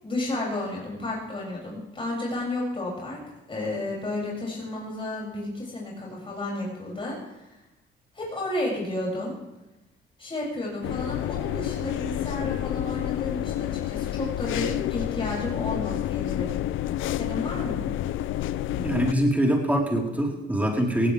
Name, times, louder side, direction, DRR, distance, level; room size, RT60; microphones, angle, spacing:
voice 1, 0.0-3.2 3.5-7.4 8.1-9.4 10.2-16.6 17.1-17.8, left 2 dB, 25° left, -4 dB, 7.4 m, -32 dB
sound 1, 10.8-19.1, left 13 dB, 85° left, 0.6 m, -29 dB
voice 2, 18.8-21.1, equal, 10° right, -1 dB, 4.5 m, -24 dB
18.5 x 17.0 x 3.6 m, 0.97 s
cardioid pair, 90°, 20 cm